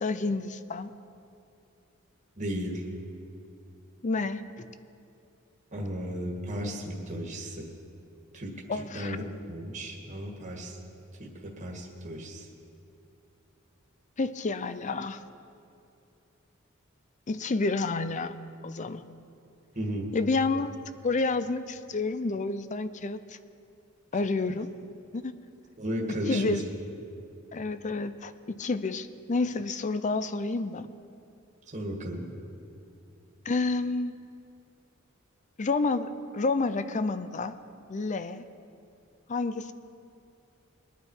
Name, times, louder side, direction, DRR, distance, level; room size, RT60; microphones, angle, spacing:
voice 1, 0.0-0.9 4.0-4.7 8.7-9.2 14.2-15.2 17.3-18.4 18.6-19.0 20.1-20.8 21.0-23.4 24.1-24.7 25.1-25.3 26.3-26.6 27.5-30.9 33.5-34.1 35.6-37.6 37.9-38.4 39.3-39.7, left 3 dB, 35° left, 12 dB, 0.5 m, -29 dB
voice 2, 2.4-2.9 5.7-7.7 8.3-9.2 9.5-10.8 11.2-12.5 19.8-20.1 25.8-26.6 31.7-32.2, equal, 35° right, -1 dB, 1.7 m, -35 dB
22.0 x 9.2 x 4.6 m, 2.6 s
head